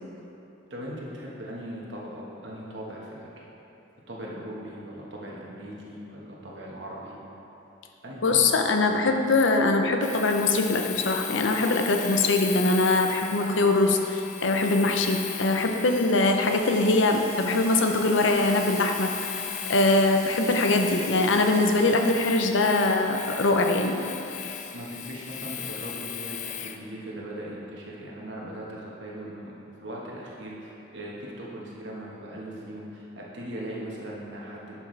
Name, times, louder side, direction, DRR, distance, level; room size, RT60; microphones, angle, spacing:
voice 1, 0.7-3.4 4.1-7.2 8.0-8.6 8.9-9.1 24.6-29.5 29.8-34.8, right 1 dB, 65° right, -4 dB, 1.5 m, -39 dB
voice 2, 8.2-19.4 19.7-24.0, left 2 dB, 75° left, 4 dB, 0.7 m, -22 dB
Domestic sounds home sounds, 10.0-26.8, left 9 dB, 40° left, 0.3 m, -37 dB
sound 1, 16.4-21.8, left 1 dB, 15° left, 1.3 m, -43 dB
11.5 x 6.1 x 3.3 m, 3.0 s
head